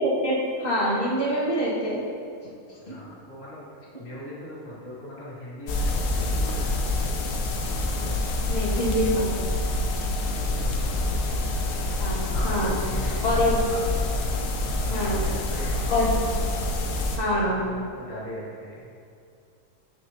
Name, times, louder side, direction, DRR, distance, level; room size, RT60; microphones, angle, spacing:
voice 1, 0.0-2.0 8.5-9.3 12.0-12.8 13.2-13.5 14.9-15.2 15.9-16.2 17.2-17.6, equal, 30° left, -8 dB, 1.7 m, -25 dB
voice 2, 2.8-7.2 10.2-11.2 12.3-13.8 14.8-15.8 16.3-16.4 17.3-18.9, left 1 dB, 50° left, -11 dB, 2.3 m, -40 dB
sound 1, 5.7-17.2, left 2 dB, 85° left, 1.3 m, -27 dB
8.2 x 6.5 x 2.7 m, 2.4 s
omnidirectional pair, 1.6 m